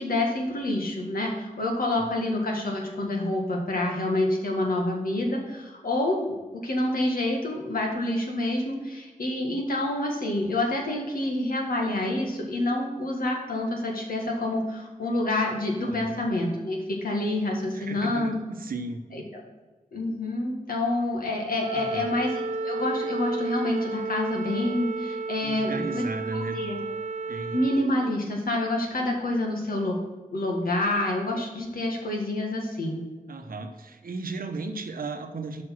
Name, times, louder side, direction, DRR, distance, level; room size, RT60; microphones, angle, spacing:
voice 1, 0.0-6.3 6.6-18.4 19.1-19.4 19.9-22.3 22.6-26.1 26.3-26.8 27.5-30.0 30.3-33.0, left 1 dB, 85° left, 0 dB, 1.7 m, -27 dB
voice 2, 15.8-16.2 17.7-19.0 21.7-22.1 25.4-26.6 27.3-27.6 33.3-35.6, right 3 dB, 80° right, 6 dB, 0.9 m, -35 dB
Wind instrument woodwind instrument, 21.6-27.9, right 3 dB, 55° right, 0.6 m, -32 dB
6.4 x 5.3 x 6.0 m, 1.2 s
cardioid pair, 55°, 15 cm